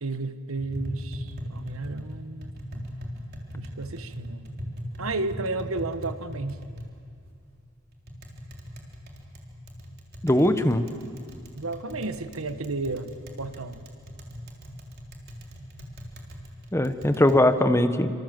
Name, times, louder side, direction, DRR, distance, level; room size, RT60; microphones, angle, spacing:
voice 1, 0.0-2.8 3.5-4.5 5.0-6.6 11.6-13.8, right 3 dB, 70° right, 11 dB, 1.2 m, -33 dB
Tap, 0.6-17.4, equal, 50° right, 3.6 m, -40 dB
voice 2, 10.2-10.9 16.7-18.1, left 1 dB, 15° left, 9 dB, 1.1 m, -20 dB
27.0 x 26.0 x 7.7 m, 2.3 s
head